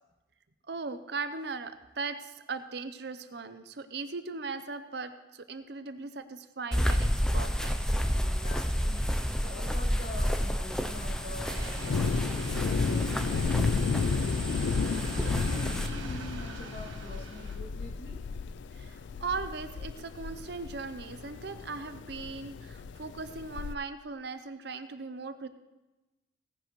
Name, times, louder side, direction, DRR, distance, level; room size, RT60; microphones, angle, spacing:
voice 1, 0.7-7.8 18.7-25.5, right 4 dB, 60° right, 11 dB, 0.7 m, -38 dB
sound 1, 6.7-15.9, equal, 5° left, 0.5 m, -30 dB
voice 2, 8.2-14.4 14.9-18.2 22.5-22.6, left 1 dB, 55° left, -2 dB, 2.4 m, -45 dB
Thunder, 11.0-23.7, left 5 dB, 70° left, 0.3 m, -33 dB
sound 2, 11.4-17.6, right 3 dB, 85° right, 1.5 m, -43 dB
17.5 x 10.5 x 3.1 m, 1.1 s
head